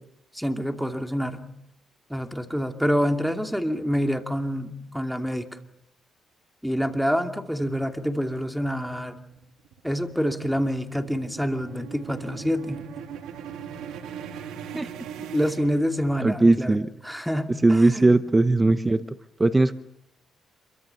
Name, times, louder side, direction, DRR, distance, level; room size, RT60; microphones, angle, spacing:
voice 1, 0.3-1.4 2.1-5.5 6.6-9.2 9.8-12.9 15.3-16.8 17.0-18.2, equal, ahead, 5 dB, 2.6 m, -27 dB
sound 1, 9.3-16.4, right 8 dB, 85° right, 3.0 m, -40 dB
voice 2, 16.2-16.9 17.6-19.7, right 2 dB, 20° right, 11 dB, 0.9 m, -19 dB
27.5 x 23.5 x 7.0 m, 0.78 s
cardioid pair, 90°, 0 cm